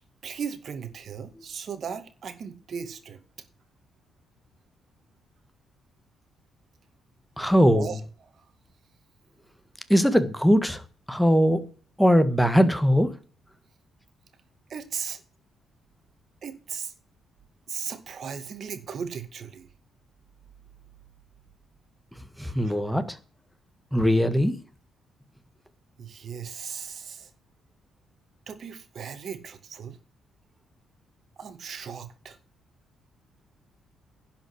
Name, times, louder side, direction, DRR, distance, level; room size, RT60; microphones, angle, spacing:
voice 1, 0.2-3.2 7.7-8.0 8.3-8.5 14.7-15.2 16.4-16.9 17.7-19.7 22.5-22.7 26.0-27.3 28.5-30.0 31.4-32.4, right 7 dB, 55° right, 2.1 m, -37 dB
voice 2, 7.4-7.9 9.9-10.8 11.1-11.6 12.0-13.1 22.4-23.2 23.9-24.6, equal, ahead, 1.6 m, -20 dB
11.0 x 5.7 x 8.0 m
cardioid pair, 90°, 0 cm